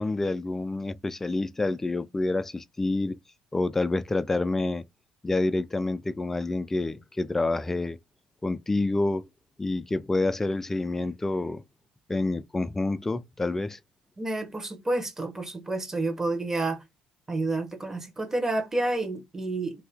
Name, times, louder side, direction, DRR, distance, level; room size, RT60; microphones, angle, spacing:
voice 1, 0.0-3.2 3.5-4.8 5.2-8.0 8.4-9.3 9.6-11.6 12.1-13.8, left 2 dB, 15° left, 0.3 m, -28 dB
voice 2, 14.2-16.8 17.3-19.9, right 2 dB, 20° right, 1.0 m, -29 dB
2.7 x 2.7 x 3.4 m
supercardioid pair, 80°, 2 cm